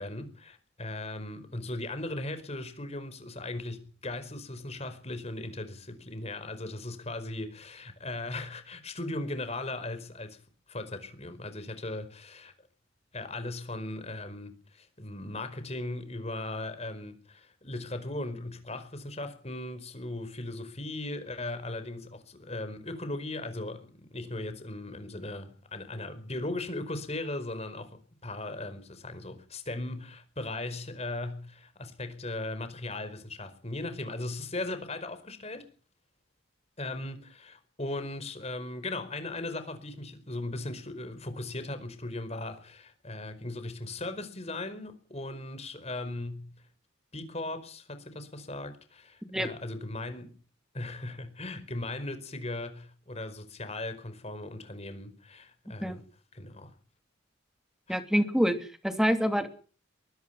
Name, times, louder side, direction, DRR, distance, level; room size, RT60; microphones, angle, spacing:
voice 1, 0.0-10.4 10.7-12.7 13.1-35.7 36.8-46.5 47.1-50.3 50.7-56.0 56.3-56.7 57.9-58.0, left 2 dB, 30° left, 4.8 m, -38 dB
voice 2, 57.9-58.6 58.8-59.5, equal, 5° right, 2.8 m, -26 dB
23.0 x 22.0 x 5.9 m
head